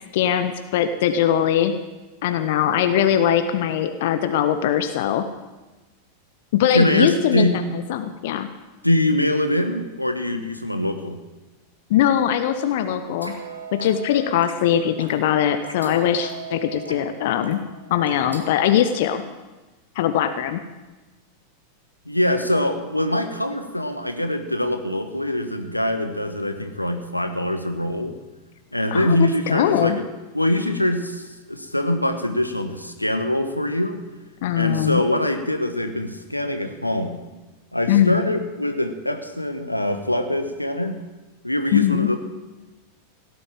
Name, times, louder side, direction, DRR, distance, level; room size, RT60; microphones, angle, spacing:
voice 1, 0.1-1.7 2.2-5.2 6.5-8.5 11.9-13.3 13.7-17.6 17.9-19.2 20.0-20.6 28.9-30.0 34.4-35.0 37.9-38.2 41.7-42.1, left 10 dB, 55° left, 9 dB, 0.9 m, -21 dB
voice 2, 6.7-7.6 8.8-11.2 22.0-28.1 28.7-30.0 30.3-34.0 34.5-37.2 37.7-41.0 41.4-42.2, left 1 dB, 85° left, 7 dB, 1.2 m, -23 dB
sound 1, 13.1-18.7, right 5 dB, 85° right, 1.7 m, -39 dB
16.5 x 8.7 x 7.5 m, 1.2 s
figure-of-eight pair, 90°, 0 cm